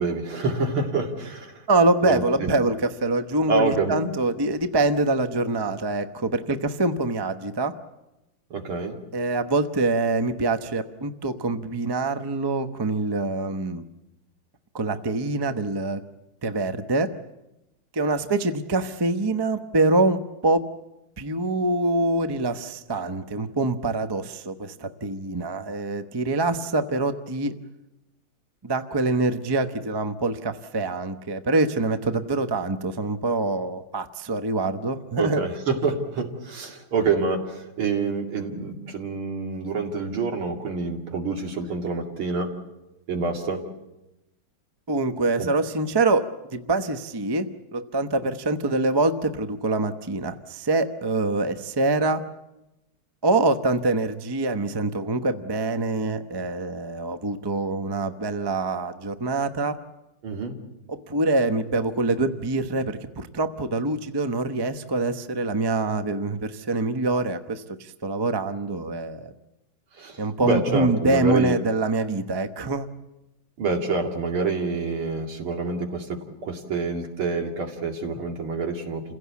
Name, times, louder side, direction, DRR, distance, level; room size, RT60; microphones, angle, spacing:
voice 1, 0.0-1.7 2.0-2.5 3.5-4.0 8.5-9.0 35.2-42.5 43.1-43.6 45.4-45.5 60.2-60.6 69.9-71.5 73.6-79.0, right 4 dB, 85° right, 3 dB, 3.3 m, -27 dB
voice 2, 1.7-7.7 9.1-13.8 14.7-16.0 16.4-17.1 17.9-20.6 21.2-27.5 28.6-35.4 44.9-46.2 46.5-52.2 53.2-59.8 60.9-69.3 70.2-72.9, right 2 dB, 35° right, 9 dB, 0.4 m, -25 dB
28.5 x 16.5 x 8.4 m, 0.95 s
omnidirectional pair, 2.3 m